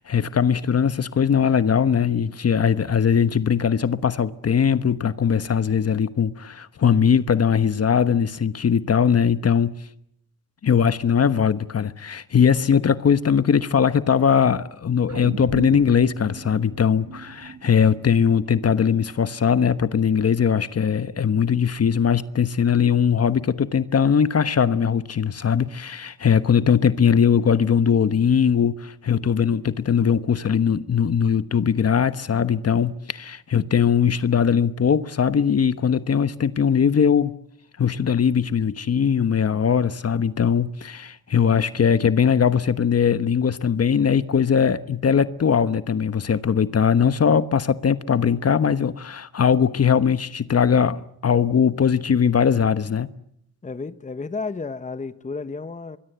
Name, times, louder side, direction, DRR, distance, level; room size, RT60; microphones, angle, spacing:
voice 1, 0.0-9.7 10.6-37.3 37.8-53.1, left 7 dB, 40° left, 1.2 m, -20 dB
sound 1, 15.1-19.6 20.0-20.1, right 7 dB, 50° right, 1.9 m, -37 dB
voice 2, 53.6-56.0, left 4 dB, 20° left, 1.1 m, -32 dB
24.0 x 22.0 x 8.1 m
cardioid pair, 75°, 36 cm